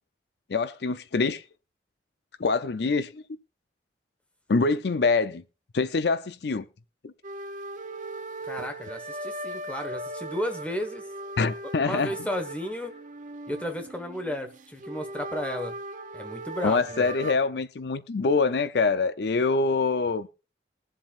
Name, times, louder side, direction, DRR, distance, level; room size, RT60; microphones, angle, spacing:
voice 1, 0.5-1.4 2.4-3.2 4.5-5.4 5.7-6.7 7.0-7.1 11.4-12.1 16.6-20.3, left 4 dB, 65° left, 0.5 m, -25 dB
sound 1, 7.2-17.3, right 2 dB, 45° right, 0.7 m, -38 dB
voice 2, 8.4-11.1 11.8-12.9 13.5-15.7 16.1-17.1, left 1 dB, 5° left, 1.3 m, -33 dB
21.0 x 7.4 x 2.5 m
head